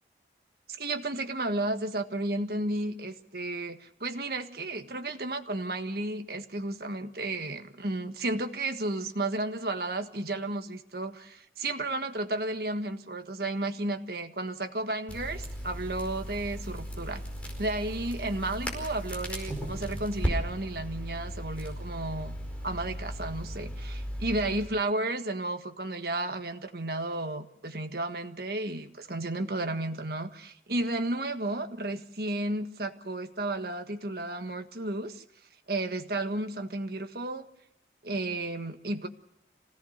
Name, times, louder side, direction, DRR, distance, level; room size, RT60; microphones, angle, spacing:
voice 1, 0.7-17.2 17.6-22.4 22.6-35.2 35.7-37.5 38.0-39.1, right 2 dB, 55° right, 1.6 m, -33 dB
Crackle, 15.1-24.7, equal, 10° left, 4.7 m, -36 dB
27.0 x 17.0 x 6.6 m
head